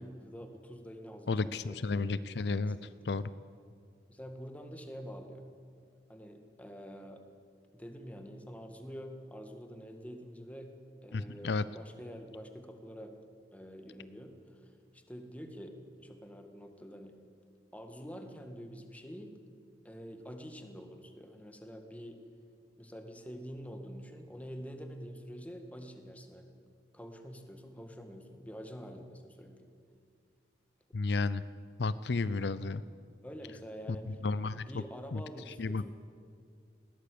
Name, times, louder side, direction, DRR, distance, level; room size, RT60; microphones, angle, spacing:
voice 1, 0.0-2.1 2.8-3.1 4.1-5.4 6.1-7.2 7.7-10.7 11.0-13.1 13.5-14.3 14.6-17.1 17.7-19.3 19.8-22.2 22.8-26.5 26.9-29.7 33.2-34.1 34.5-35.9, equal, 10° left, 5 dB, 1.8 m, -47 dB
voice 2, 1.3-3.3 11.1-11.6 30.9-31.4 31.8-32.8 34.1-34.8 35.1-35.9, left 3 dB, 70° left, 16 dB, 0.5 m, -33 dB
20.5 x 17.0 x 8.5 m, 2.2 s
head